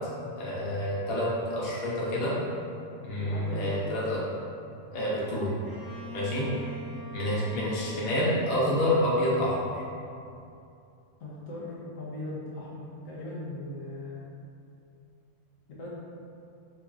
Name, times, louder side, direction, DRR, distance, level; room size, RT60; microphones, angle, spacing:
voice 1, 0.4-2.3 3.0-4.2 4.9-5.5 6.1-6.5 7.1-9.8, left 1 dB, 55° left, -6 dB, 0.9 m, -28 dB
voice 2, 3.2-4.0 6.4-6.7 11.2-14.3 15.7-15.9, left 1 dB, 75° left, -6 dB, 1.1 m, -39 dB
Bowed string instrument, 5.7-9.4, right 2 dB, 20° right, 0.8 m, -45 dB
4.4 x 2.8 x 2.3 m, 2.6 s
omnidirectional pair, 1.4 m